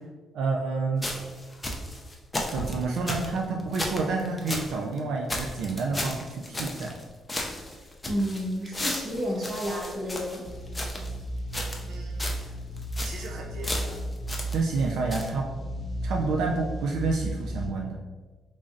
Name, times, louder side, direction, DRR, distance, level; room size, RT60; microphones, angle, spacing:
voice 1, 0.3-1.1 2.5-6.9 11.9-12.3 13.0-14.0 14.5-15.5 16.0-17.9, right 3 dB, 80° right, -1 dB, 0.4 m, -29 dB
sound 1, 1.0-4.7 5.0-5.1 5.3-7.0 7.3-11.1 11.5-11.9 12.2-12.5 12.8-13.3 13.6-14.8 15.1-15.3, left 1 dB, 15° left, 0.4 m, -34 dB
voice 2, 8.1-10.5, equal, 40° right, -2 dB, 0.8 m, -30 dB
sound 2, 10.4-17.7, right 1 dB, 40° left, 0.8 m, -34 dB
3.7 x 3.1 x 2.6 m, 1.3 s
cardioid pair, 140°, 0 cm